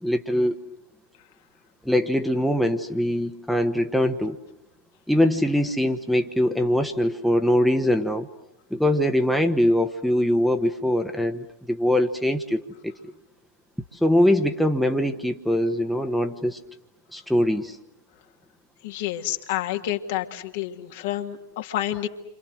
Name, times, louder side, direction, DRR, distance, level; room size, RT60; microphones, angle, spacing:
voice 1, 0.0-0.6 1.8-4.4 5.1-8.3 8.7-13.0 14.0-16.6 17.1-17.8, left 1 dB, ahead, 5 dB, 1.4 m, -22 dB
voice 2, 18.8-22.1, left 13 dB, 50° left, 5 dB, 1.8 m, -29 dB
29.5 x 26.0 x 6.3 m, 0.86 s
figure-of-eight pair, 90°, 0 cm